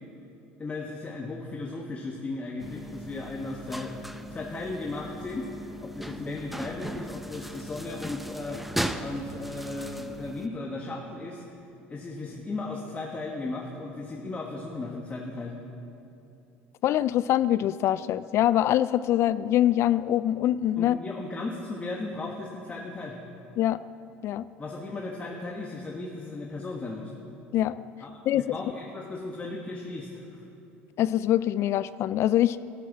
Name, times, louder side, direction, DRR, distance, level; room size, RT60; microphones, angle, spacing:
voice 1, 0.6-4.0 4.3-11.4 11.9-15.6 20.8-23.2 24.6-27.1 28.0-30.5, left 2 dB, 25° left, 0 dB, 1.5 m, -36 dB
sound 1, 2.6-10.5, right 1 dB, 5° right, 0.7 m, -37 dB
voice 2, 16.8-21.0 23.6-23.8 24.2-24.5 27.5-27.8 28.3-28.4 31.0-32.6, left 12 dB, 50° left, 16 dB, 0.3 m, -24 dB
13.0 x 12.0 x 7.3 m, 2.8 s
supercardioid pair, 90°, 6 cm